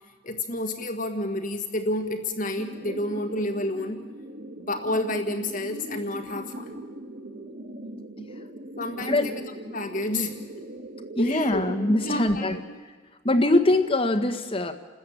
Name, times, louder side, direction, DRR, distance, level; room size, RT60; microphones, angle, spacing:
voice 1, 0.2-4.0 4.6-6.8 8.8-10.4 11.2-11.7 12.0-12.6, left 1 dB, 45° left, 5 dB, 1.6 m, -30 dB
sound 1, 2.6-12.6, right 1 dB, 75° right, 3.5 m, -39 dB
voice 2, 11.2-12.6 13.2-14.7, left 2 dB, 30° left, 5 dB, 1.6 m, -22 dB
29.0 x 13.5 x 8.8 m, 1.4 s
head